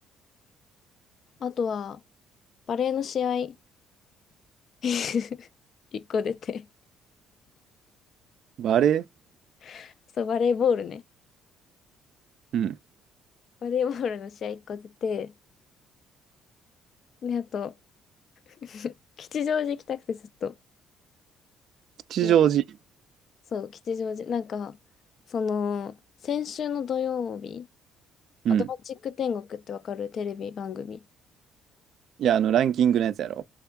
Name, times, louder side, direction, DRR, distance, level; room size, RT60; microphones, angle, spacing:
voice 1, 1.4-2.0 2.7-3.6 4.8-5.5 5.9-6.7 9.6-11.0 13.6-15.3 17.2-17.7 18.6-20.5 22.2-22.3 23.5-24.8 25.3-26.0 26.2-27.7 28.5-31.0, left 7 dB, 45° left, 0.3 m, -30 dB
voice 2, 8.6-9.0 12.5-12.8 22.1-22.6 28.4-28.7 32.2-33.4, right 10 dB, 60° right, 0.3 m, -22 dB
3.4 x 3.4 x 2.2 m
cardioid pair, 135°, 0 cm